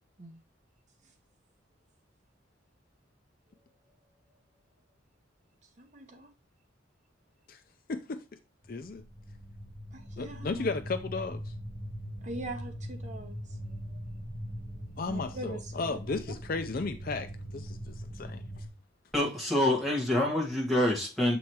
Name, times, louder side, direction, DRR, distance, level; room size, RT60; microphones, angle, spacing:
voice 1, 5.8-6.3 9.9-10.7 12.2-14.0 15.1-16.0, right 1 dB, 35° right, 0.8 m, -43 dB
sound 1, 8.6-18.7, equal, 25° left, 1.3 m, -41 dB
voice 2, 8.7-9.0 10.2-11.4 15.0-18.4, left 3 dB, 45° left, 0.5 m, -34 dB
voice 3, 19.1-21.4, left 1 dB, ahead, 1.6 m, -26 dB
7.1 x 3.0 x 4.6 m
head